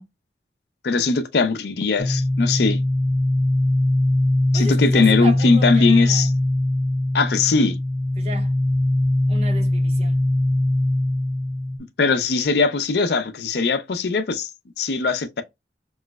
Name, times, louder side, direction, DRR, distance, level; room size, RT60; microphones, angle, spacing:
voice 1, 0.8-2.8 4.5-6.3 7.1-7.8 12.0-14.5 14.8-15.4, left 4 dB, 65° left, 0.5 m, -20 dB
sound 1, 2.0-11.8, left 1 dB, 10° left, 0.5 m, -21 dB
voice 2, 4.5-6.3 8.2-8.5 9.3-10.2, right 1 dB, 35° right, 0.6 m, -33 dB
3.0 x 2.0 x 3.3 m
head